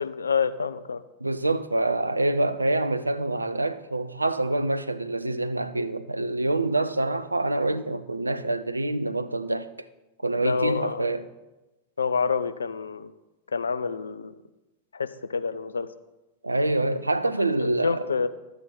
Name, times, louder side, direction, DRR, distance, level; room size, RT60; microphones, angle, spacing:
voice 1, 0.0-1.0 10.4-11.1 12.0-13.1 13.5-14.3 14.9-15.9 17.6-18.3, left 5 dB, 75° left, 0.5 m, -27 dB
voice 2, 1.2-9.7 10.2-11.3 16.4-18.0, right 2 dB, 85° right, 0.5 m, -26 dB
12.5 x 8.5 x 4.3 m
figure-of-eight pair, 90°, 0 cm